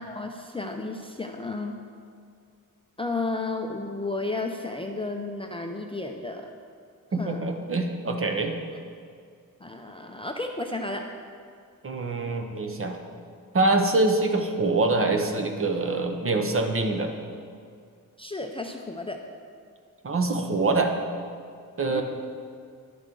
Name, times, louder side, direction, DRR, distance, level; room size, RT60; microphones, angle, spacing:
voice 1, 0.0-1.7 3.0-6.5 7.2-7.4 9.6-11.0 18.2-19.2 21.9-22.0, left 2 dB, 15° left, 2 dB, 0.5 m, -32 dB
voice 2, 7.1-8.6 11.8-13.0 13.5-17.1 20.0-20.9 21.8-22.0, right 2 dB, 35° right, 4 dB, 0.8 m, -25 dB
11.0 x 6.1 x 3.8 m, 2.2 s
cardioid pair, 100°, 35 cm